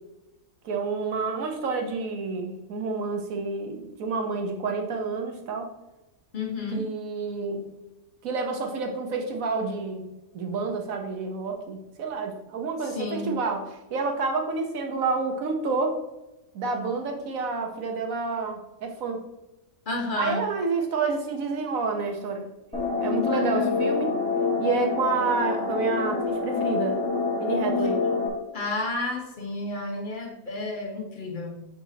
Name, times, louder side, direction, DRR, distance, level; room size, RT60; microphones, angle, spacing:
voice 1, 0.6-5.7 6.7-7.7 8.2-10.1 10.3-16.0 16.5-19.2 20.2-22.5 23.0-24.1 24.6-27.0 27.4-28.0, right 4 dB, 70° right, 4 dB, 1.4 m, -29 dB
voice 2, 6.3-6.8 12.9-13.3 19.9-20.5 23.3-23.8 27.8-28.0 28.5-31.7, left 2 dB, 35° left, 1 dB, 1.2 m, -31 dB
sound 1, 22.7-28.3, left 4 dB, 5° left, 1.4 m, -26 dB
8.7 x 4.2 x 2.8 m, 1.0 s
omnidirectional pair, 1.5 m